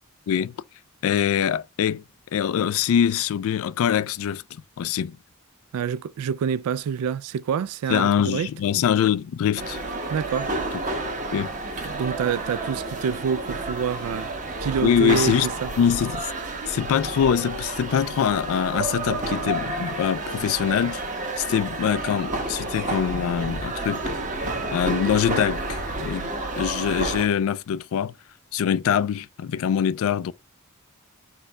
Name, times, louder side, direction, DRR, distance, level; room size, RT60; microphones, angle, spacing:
voice 1, 1.0-2.0 2.3-4.4 4.8-5.2 7.9-9.8 11.3-11.5 14.8-15.5 15.8-16.3 16.7-21.0 21.4-24.0 24.7-28.1 28.5-30.3, left 8 dB, 65° left, 0.3 m, -23 dB
voice 2, 5.7-8.5 10.1-10.5 11.8-14.3 14.6-15.7, right 7 dB, 85° right, 0.3 m, -27 dB
sound 1, 9.6-27.3, right 2 dB, 35° right, 0.9 m, -30 dB
4.5 x 2.2 x 4.7 m
head